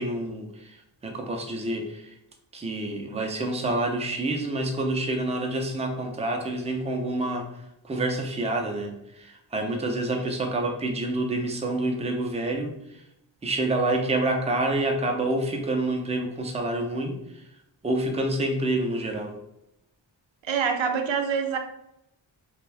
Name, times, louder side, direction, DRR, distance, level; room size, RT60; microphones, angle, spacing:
voice 1, 0.0-2.1 2.5-7.5 7.8-13.0 13.4-17.4 17.8-19.3, right 2 dB, 15° right, 3 dB, 0.4 m, -28 dB
voice 2, 20.4-21.6, right 6 dB, 85° right, 5 dB, 0.5 m, -25 dB
2.6 x 2.2 x 3.2 m, 0.81 s
wide cardioid pair, 75°, 45 cm